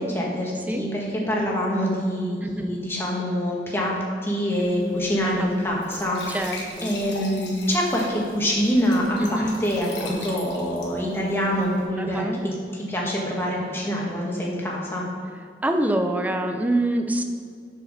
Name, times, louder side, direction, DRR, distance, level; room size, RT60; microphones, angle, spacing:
voice 1, 0.0-15.0, equal, 15° left, -3 dB, 1.4 m, -25 dB
voice 2, 2.4-2.8 5.2-5.6 6.3-6.9 9.2-9.5 12.0-12.4 15.6-17.2, right 1 dB, 10° right, 5 dB, 0.5 m, -25 dB
Glass / Trickle dribble / Fill (with liquid), 4.5-11.9, left 3 dB, 75° left, 1.5 m, -41 dB
7.6 x 4.7 x 6.1 m, 2.2 s
head